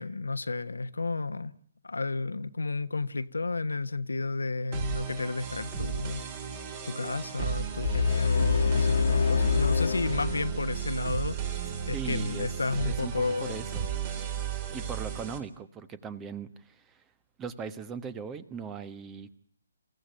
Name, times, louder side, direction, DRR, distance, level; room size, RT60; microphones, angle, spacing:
voice 1, 0.0-1.5 1.8-6.2 6.8-13.6, left 3 dB, 75° left, 1.1 m, -32 dB
sound 1, 4.7-15.4, right 7 dB, 35° right, 3.6 m, -35 dB
sound 2, 7.8-10.9, left 5 dB, 55° left, 1.5 m, -26 dB
voice 2, 11.9-12.5 12.8-13.9 14.7-17.0 17.4-19.3, right 6 dB, 15° right, 1.2 m, -39 dB
28.5 x 16.0 x 9.2 m
figure-of-eight pair, 140°, 0 cm